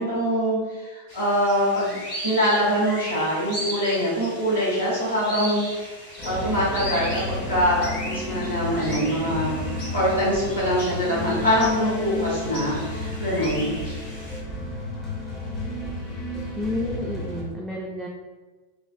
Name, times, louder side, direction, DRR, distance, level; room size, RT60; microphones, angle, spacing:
voice 1, 0.0-2.0 2.2-5.9 6.2-9.6 9.9-13.7, equal, 75° left, -8 dB, 1.4 m, -24 dB
sound 1, 1.1-14.4, equal, 50° left, 1.4 m, -37 dB
sound 2, 6.2-17.4, left 2 dB, 25° left, 1.0 m, -31 dB
voice 2, 16.6-18.1, left 2 dB, 5° right, -3 dB, 0.4 m, -30 dB
3.1 x 3.1 x 2.5 m, 1.3 s
figure-of-eight pair, 90°, 0 cm